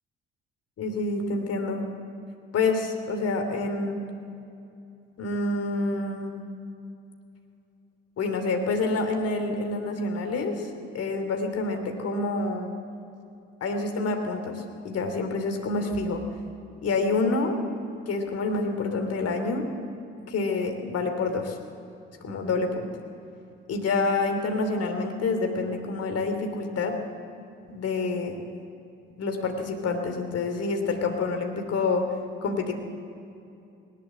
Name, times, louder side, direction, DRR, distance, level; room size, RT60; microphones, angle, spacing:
voice 1, 0.8-1.9 2.5-4.0 5.2-6.4 8.2-10.7 10.9-12.7 13.6-16.2 16.8-17.6 18.1-19.7 20.3-21.6 22.2-22.9 23.7-27.0 27.7-28.4 29.2-32.1 32.4-32.7, left 3 dB, 45° left, 5 dB, 2.9 m, -27 dB
19.5 x 19.0 x 7.8 m, 2.7 s
figure-of-eight pair, 50°, 33 cm